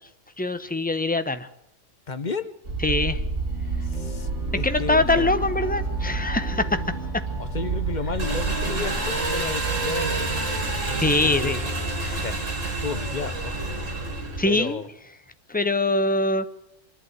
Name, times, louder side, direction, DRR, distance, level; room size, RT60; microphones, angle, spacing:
voice 1, 0.4-1.5 2.8-3.2 4.6-6.8 11.0-11.6 12.0-12.2 14.4-14.8 15.5-16.5, left 2 dB, 10° left, 10 dB, 0.8 m, -23 dB
voice 2, 2.1-2.5 3.8-5.3 7.4-10.4 10.9-11.7 12.1-12.4 12.8-14.1 14.4-14.9, left 4 dB, 40° left, 11 dB, 1.1 m, -33 dB
sound 1, 2.6-14.4, right 3 dB, 70° right, 3.4 m, -30 dB
sound 2, 3.5-12.2, equal, 35° right, 4.3 m, -46 dB
Engine, 8.2-14.7, right 2 dB, 90° right, 3.3 m, -30 dB
25.5 x 11.5 x 9.4 m, 0.80 s
omnidirectional pair, 1.3 m